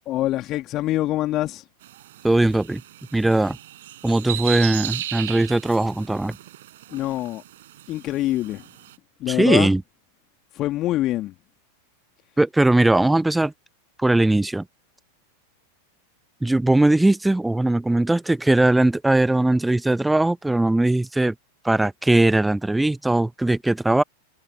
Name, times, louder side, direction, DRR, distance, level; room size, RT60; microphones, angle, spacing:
voice 1, 0.1-1.6 6.9-7.4 7.9-8.6 9.2-9.7 10.5-11.3, left 15 dB, 35° left, 3.2 m, -25 dB
sound 1, 1.8-9.0, right 14 dB, 55° right, 6.7 m, -36 dB
voice 2, 2.2-2.8 3.1-3.6 4.0-6.4 9.3-9.8 12.4-13.5 14.0-14.6 16.4-21.3 21.6-24.0, right 2 dB, 5° right, 1.0 m, -19 dB
figure-of-eight pair, 90°, 0 cm